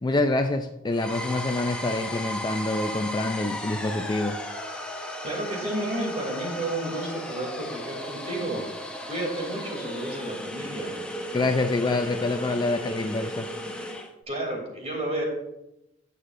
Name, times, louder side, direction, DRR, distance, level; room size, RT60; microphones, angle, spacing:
voice 1, 0.0-4.4 11.3-13.5, left 2 dB, 20° left, 6 dB, 0.4 m, -26 dB
sound 1, 0.9-14.1, left 1 dB, 5° left, 1.0 m, -35 dB
voice 2, 5.2-10.9 14.3-15.2, right 1 dB, 35° right, 0 dB, 3.0 m, -31 dB
17.0 x 6.5 x 2.6 m, 0.89 s
head